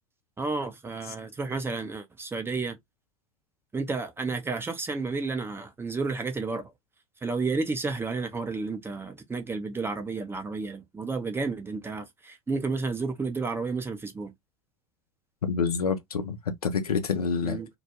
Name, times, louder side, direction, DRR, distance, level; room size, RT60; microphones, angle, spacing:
voice 1, 0.4-2.8 3.7-6.6 7.2-14.3 17.4-17.7, right 4 dB, 10° right, 0.5 m, -31 dB
voice 2, 15.4-17.6, left 5 dB, 85° left, 0.5 m, -27 dB
2.2 x 2.1 x 2.7 m
figure-of-eight pair, 80°, 19 cm